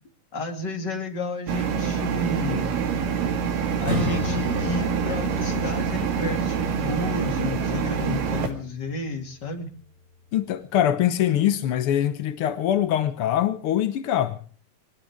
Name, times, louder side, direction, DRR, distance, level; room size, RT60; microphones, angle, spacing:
voice 1, 0.3-2.7 3.8-9.7, left 3 dB, 35° left, 2.8 m, -32 dB
sound 1, 1.5-8.5, right 6 dB, 90° right, 3.7 m, -26 dB
Acoustic guitar / Strum, 3.8-9.1, left 2 dB, 40° right, 5.9 m, -34 dB
voice 2, 10.3-14.4, left 11 dB, 75° left, 1.2 m, -23 dB
22.0 x 18.0 x 3.5 m
omnidirectional pair, 3.8 m